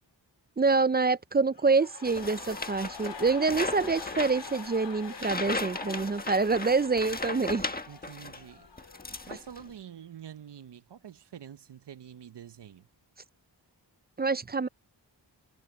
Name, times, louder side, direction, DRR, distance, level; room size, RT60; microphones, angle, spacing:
voice 1, 0.6-7.7 14.2-14.7, right 4 dB, 25° right, 0.5 m, -26 dB
sound 1, 1.5-9.6 9.9-10.0, left 5 dB, 75° left, 3.9 m, -45 dB
sound 2, 2.0-8.4 8.8-9.7, left 2 dB, 20° left, 1.5 m, -37 dB
voice 2, 7.9-8.7 9.2-12.8, right 9 dB, 65° right, 0.8 m, -46 dB
wide cardioid pair, 65°, 44 cm